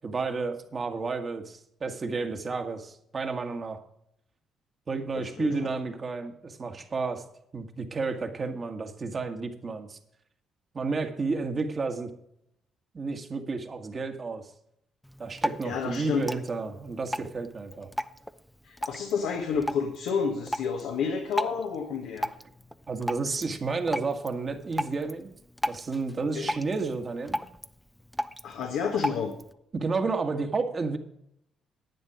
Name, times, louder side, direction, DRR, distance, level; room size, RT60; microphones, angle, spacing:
voice 1, 0.0-3.8 4.9-7.2 7.5-10.0 10.7-12.1 12.9-14.5 15.2-17.9 22.9-25.3 25.6-27.4 29.7-31.0, right 4 dB, 40° right, 5 dB, 1.8 m, -31 dB
voice 2, 5.4-5.7 15.6-16.2 18.6-22.3 26.3-26.5 28.4-29.3, left 6 dB, 80° left, 2 dB, 1.4 m, -30 dB
Drip, 15.0-29.5, equal, 5° left, 0.7 m, -37 dB
11.0 x 9.1 x 4.9 m, 0.73 s
supercardioid pair, 60°, 0 cm